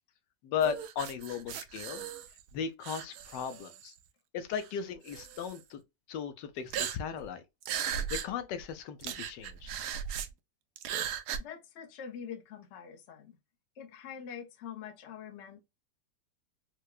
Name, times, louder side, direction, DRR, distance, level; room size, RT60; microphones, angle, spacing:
voice 1, 0.4-2.1 2.5-3.9 4.3-5.8 6.1-7.4 8.1-9.7, left 7 dB, 80° left, 1.2 m, -36 dB
sound 1, 0.6-2.5 2.8-3.9 4.5-4.7 5.1-5.6 6.7-7.3 7.6-8.3 8.6-8.7 9.0-10.3 10.8-11.4, right 9 dB, 70° right, 1.0 m, -37 dB
voice 2, 11.4-13.4 13.8-15.6, left 8 dB, 55° left, 0.8 m, -45 dB
4.7 x 2.2 x 2.3 m
omnidirectional pair, 1.9 m